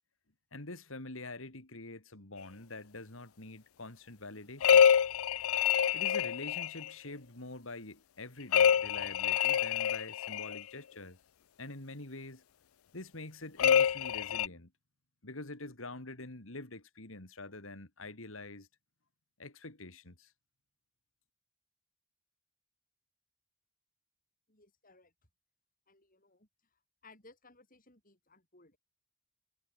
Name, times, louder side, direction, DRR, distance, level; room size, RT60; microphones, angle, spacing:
voice 1, 0.5-4.9 5.9-11.2 11.6-12.4 12.9-14.7 15.2-18.7 19.4-20.3, left 2 dB, 70° left, 3.0 m, -46 dB
sound 1, 4.6-6.9 8.5-10.6 13.6-14.5, left 8 dB, 85° left, 0.5 m, -26 dB
voice 2, 24.5-25.1 25.9-28.8, left 3 dB, 40° left, 7.8 m, -61 dB
head